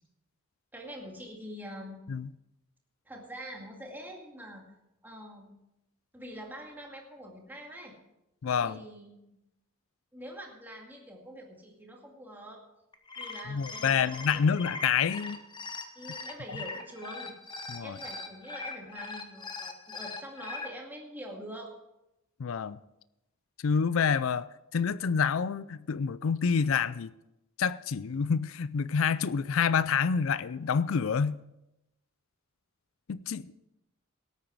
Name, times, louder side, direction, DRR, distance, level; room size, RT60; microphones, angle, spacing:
voice 1, 0.7-2.0 3.1-4.6 5.0-5.5 6.1-8.0 8.6-9.4 10.1-12.7 13.2-14.6 16.0-17.3 17.8-21.8, equal, 10° right, 2.2 m, -45 dB
voice 2, 8.4-8.8 13.5-15.4 17.7-18.0 22.4-22.8 23.6-24.5 24.7-27.1 27.6-31.4 33.1-33.5, left 6 dB, 65° left, 0.4 m, -28 dB
sound 1, 12.9-20.7, left 3 dB, 20° left, 1.1 m, -40 dB
17.5 x 8.8 x 4.7 m
head